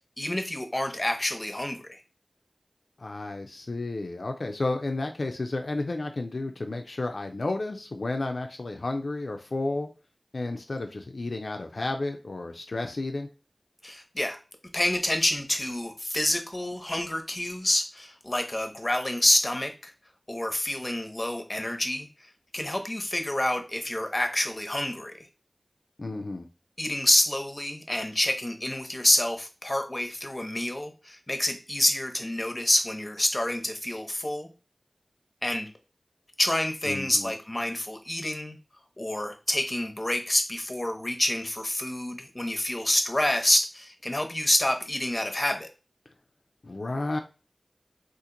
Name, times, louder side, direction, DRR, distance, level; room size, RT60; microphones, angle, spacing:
voice 1, 0.2-2.0 13.8-14.4 14.7-19.9 20.3-22.1 22.5-25.3 26.8-34.5 35.4-35.7 36.4-38.6 39.0-45.7, left 1 dB, 35° left, 5 dB, 0.7 m, -27 dB
voice 2, 3.0-9.9 10.3-13.3 26.0-26.5 36.9-37.3 46.6-47.2, left 2 dB, 85° left, 4 dB, 0.4 m, -32 dB
2.8 x 2.5 x 3.7 m, 0.32 s
wide cardioid pair, 40°, 0 cm